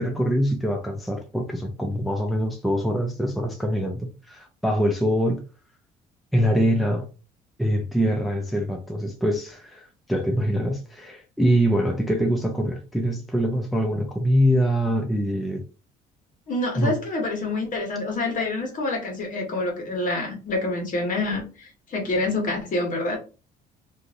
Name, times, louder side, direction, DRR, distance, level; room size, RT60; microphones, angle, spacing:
voice 1, 0.0-5.5 6.3-7.1 7.6-15.6 16.8-17.0, equal, ahead, 0.5 m, -24 dB
voice 2, 16.5-23.2, left 2 dB, 50° left, 1.4 m, -27 dB
3.0 x 2.6 x 2.5 m
cardioid pair, 110°, 17 cm